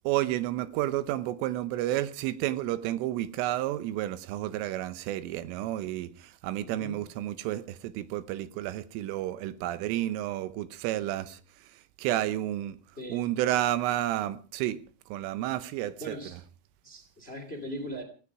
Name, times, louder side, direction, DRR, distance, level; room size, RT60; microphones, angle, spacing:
voice 1, 0.1-11.4 12.0-12.8 13.1-14.8 15.1-16.2, right 14 dB, 90° right, 3.6 m, -31 dB
voice 2, 6.6-7.0 13.0-13.3 16.0-16.4 16.8-18.0, equal, 20° left, 1.7 m, -40 dB
17.0 x 16.0 x 4.9 m
omnidirectional pair, 5.6 m